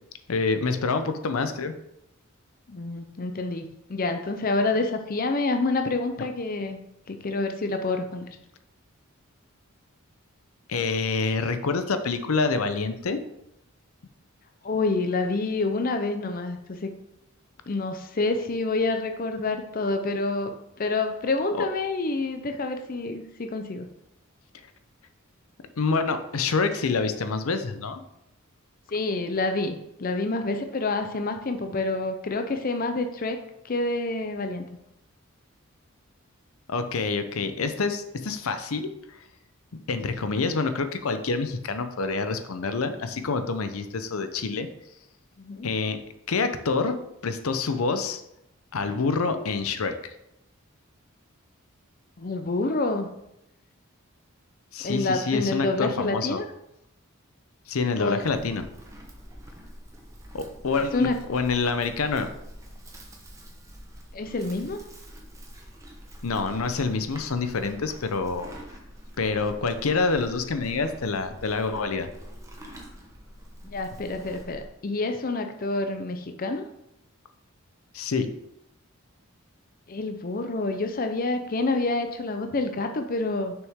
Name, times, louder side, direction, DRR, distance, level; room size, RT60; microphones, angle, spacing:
voice 1, 0.3-1.7 10.7-13.2 21.5-21.7 25.8-28.0 36.7-38.9 39.9-44.7 45.6-46.0 46.3-47.0 47.2-48.2 48.7-49.9 54.7-56.4 57.7-58.7 60.3-62.3 66.2-68.5 69.2-72.1 77.9-78.3, left 4 dB, 80° left, 9 dB, 0.6 m, -27 dB
voice 2, 2.7-6.8 7.1-8.3 14.6-16.9 17.7-23.9 28.9-33.4 33.6-34.6 45.4-45.7 52.2-53.1 54.8-56.4 58.0-58.2 60.9-61.2 64.1-64.8 73.7-76.6 79.9-83.5, left 3 dB, 40° left, 6 dB, 0.5 m, -28 dB
Livestock farm animals working animals, 58.2-74.7, equal, 15° right, 1.0 m, -45 dB
6.3 x 6.1 x 3.6 m, 0.81 s
head